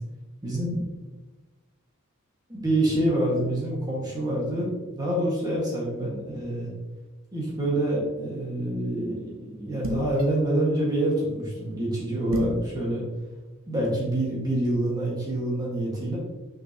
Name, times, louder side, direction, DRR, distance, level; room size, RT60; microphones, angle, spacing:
voice 1, 0.4-0.8 2.5-6.7 7.3-13.0 13.7-16.2, right 1 dB, 20° right, -5 dB, 1.7 m, -26 dB
sound 1, 9.8-10.2 12.3-12.7, left 2 dB, 70° right, 1.0 m, -29 dB
5.9 x 5.9 x 2.9 m, 1.2 s
head